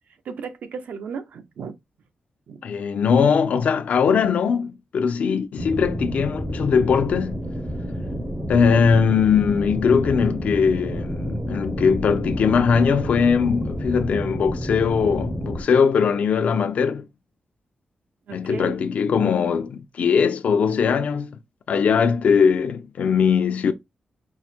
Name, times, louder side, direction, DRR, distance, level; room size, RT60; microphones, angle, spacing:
voice 1, 0.2-1.8 2.5-2.6 18.3-18.8, right 6 dB, 80° right, 0.7 m, -35 dB
voice 2, 2.6-7.5 8.5-17.1 18.3-21.4 21.7-23.7, left 6 dB, 65° left, 0.5 m, -20 dB
sound 1, 5.6-15.6, equal, 15° right, 0.5 m, -29 dB
4.7 x 2.1 x 4.2 m
wide cardioid pair, 165°, 3 cm